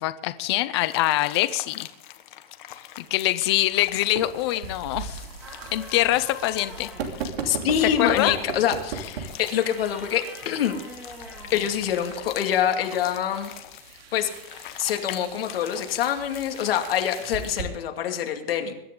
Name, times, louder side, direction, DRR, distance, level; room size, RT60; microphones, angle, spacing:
voice 1, 0.0-1.9 3.0-5.2 5.7-6.9 8.0-8.4, left 15 dB, 25° left, 13 dB, 0.5 m, -24 dB
sound 1, 0.7-17.7, left 12 dB, 55° left, 1.4 m, -44 dB
sound 2, 3.7-17.6, right 6 dB, 75° right, 2.9 m, -39 dB
sound 3, 5.4-7.2 9.4-11.9, equal, 5° right, 2.1 m, -44 dB
voice 2, 7.4-10.8 11.5-13.5 14.1-14.3 14.8-18.7, left 9 dB, 70° left, 4 dB, 2.5 m, -25 dB
22.0 x 11.0 x 3.8 m, 0.87 s
supercardioid pair, 175°, 30 cm